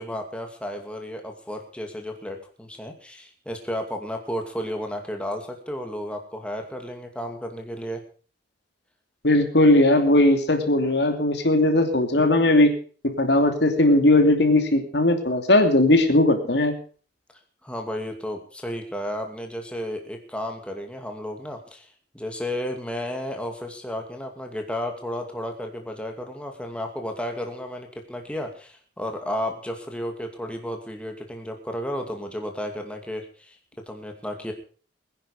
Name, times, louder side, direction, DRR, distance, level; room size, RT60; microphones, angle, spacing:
voice 1, 0.0-8.0 17.6-33.6 33.9-34.5, equal, 5° left, 3 dB, 2.3 m, -33 dB
voice 2, 9.2-12.7 13.0-16.7, left 1 dB, 65° left, 6 dB, 2.9 m, -18 dB
21.5 x 10.5 x 5.0 m, 0.41 s
head